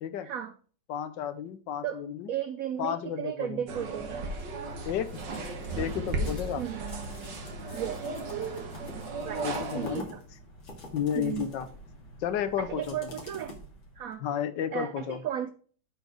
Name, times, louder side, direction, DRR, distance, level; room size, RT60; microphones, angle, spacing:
voice 1, 0.2-0.5 1.8-2.0 2.3-4.3 6.6-6.8 7.7-8.0 9.2-9.5 9.7-10.2 11.1-11.5 12.6-13.6 14.0-14.2 14.7-15.5, right 10 dB, 85° right, 0.7 m, -34 dB
voice 2, 0.9-2.3 2.8-3.6 4.8-5.2 5.8-6.6 9.4-10.1 10.9-11.7 12.2-13.1 14.2-15.2, left 9 dB, 70° left, 1.4 m, -32 dB
sound 1, 3.7-10.0, right 3 dB, 65° right, 2.0 m, -35 dB
sound 2, 4.4-14.1, left 1 dB, 90° left, 2.9 m, -47 dB
7.8 x 4.6 x 4.7 m
omnidirectional pair, 2.1 m